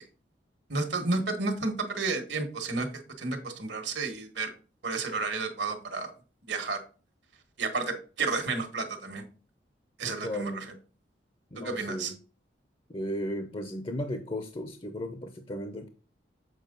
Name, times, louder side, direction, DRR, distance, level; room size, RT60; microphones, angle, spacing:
voice 1, 0.7-2.9 3.2-4.5 4.8-6.1 6.5-6.8 7.6-9.2 10.0-10.5 11.6-12.1, right 3 dB, 75° right, 6 dB, 1.6 m, -31 dB
voice 2, 10.0-10.7 11.5-12.2 12.9-15.9, equal, 30° left, 8 dB, 0.6 m, -35 dB
7.4 x 4.6 x 3.8 m, 0.38 s
head